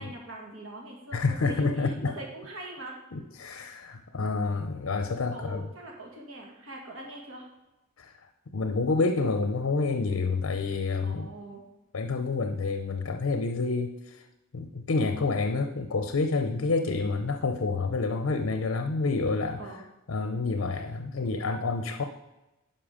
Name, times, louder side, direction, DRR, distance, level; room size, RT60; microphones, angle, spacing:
voice 1, 0.0-2.9 5.3-7.5 11.0-11.6 19.6-19.8, right 2 dB, 80° right, 0 dB, 2.0 m, -42 dB
voice 2, 1.1-2.1 3.1-5.6 8.0-8.1 8.5-11.3 11.9-14.2 14.5-19.6 20.1-22.0, left 3 dB, 75° left, 7 dB, 0.6 m, -28 dB
10.5 x 5.7 x 5.0 m, 1.0 s
head